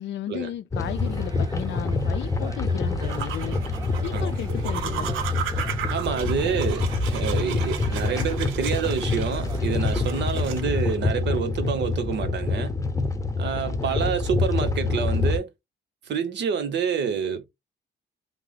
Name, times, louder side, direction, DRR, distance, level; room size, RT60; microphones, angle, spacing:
voice 1, 0.0-3.6 4.0-5.1, left 11 dB, 65° left, 0.4 m, -34 dB
sound 1, 0.7-15.4, left 3 dB, 15° left, 0.7 m, -26 dB
sound 2, 0.8-11.0, right 3 dB, 20° right, 0.6 m, -43 dB
sound 3, 3.0-10.6, right 8 dB, 85° right, 0.5 m, -35 dB
voice 2, 5.9-12.7 13.4-15.5 16.1-17.5, right 7 dB, 65° right, 0.8 m, -28 dB
2.8 x 2.0 x 3.9 m
cardioid pair, 90°, 20 cm